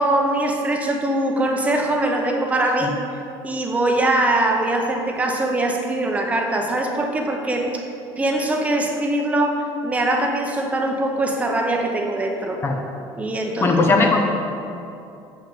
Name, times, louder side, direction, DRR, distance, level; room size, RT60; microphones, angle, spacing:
voice 1, 0.0-3.0 3.4-7.8 8.2-12.6 13.2-13.7, right 1 dB, 15° right, 2 dB, 0.8 m, -22 dB
voice 2, 13.6-14.3, left 3 dB, 25° left, 3 dB, 0.6 m, -17 dB
7.1 x 6.3 x 7.0 m, 2.7 s
cardioid pair, 165°, 9 cm